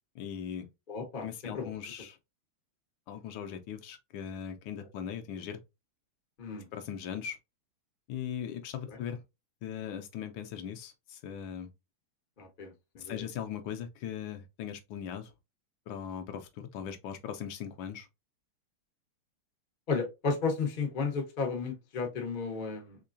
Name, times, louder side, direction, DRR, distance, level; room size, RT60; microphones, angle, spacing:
voice 1, 0.1-0.7 1.2-2.2 3.1-5.6 6.7-7.4 8.1-9.2 9.6-11.7 13.0-15.3 15.9-18.1, left 8 dB, 75° left, 1.2 m, -39 dB
voice 2, 0.9-1.7 6.4-6.7 8.9-9.0 12.4-13.3 19.9-23.0, left 4 dB, 55° left, 0.5 m, -33 dB
3.6 x 3.1 x 2.5 m
omnidirectional pair, 2.3 m